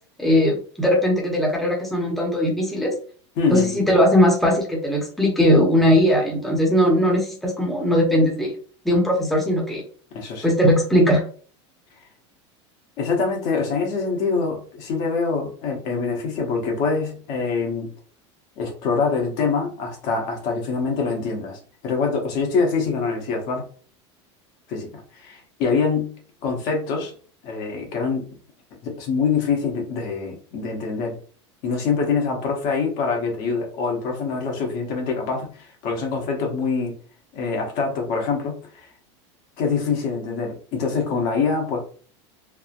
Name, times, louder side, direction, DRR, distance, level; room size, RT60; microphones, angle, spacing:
voice 1, 0.2-2.9 3.5-8.5 8.8-9.8 10.4-11.2, equal, ahead, -2 dB, 0.8 m, -19 dB
voice 2, 3.4-3.9 10.1-10.5 13.0-17.9 18.6-23.7 24.7-26.1 26.4-27.1 27.4-28.3 28.8-31.2 31.6-36.9 37.3-38.9 39.6-41.8, left 4 dB, 60° left, 1 dB, 1.0 m, -25 dB
3.2 x 2.1 x 2.4 m, 0.43 s
supercardioid pair, 115°, 15 cm